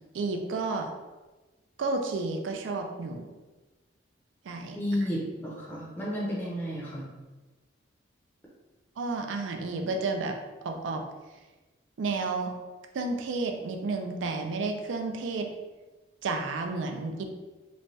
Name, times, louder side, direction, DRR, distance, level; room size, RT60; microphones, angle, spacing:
voice 1, 0.1-0.9 1.8-3.2 4.5-4.8 9.0-10.4 10.6-11.0 12.0-12.6 12.9-15.5 16.2-17.2, right 3 dB, 75° right, 4 dB, 0.4 m, -31 dB
voice 2, 4.7-7.1, equal, 10° left, -6 dB, 0.5 m, -32 dB
3.0 x 2.2 x 2.7 m, 1.2 s
head